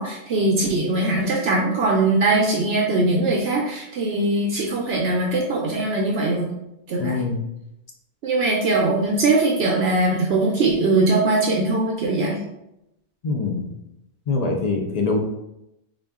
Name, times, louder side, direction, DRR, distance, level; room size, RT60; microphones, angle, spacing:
voice 1, 0.0-6.5 6.9-7.2 8.2-12.4, right 2 dB, 70° right, -1 dB, 0.8 m, -21 dB
voice 2, 7.0-7.4 13.2-13.7 14.3-15.2, left 3 dB, 55° left, 1 dB, 0.4 m, -23 dB
3.7 x 2.4 x 3.5 m, 0.85 s
omnidirectional pair, 1.2 m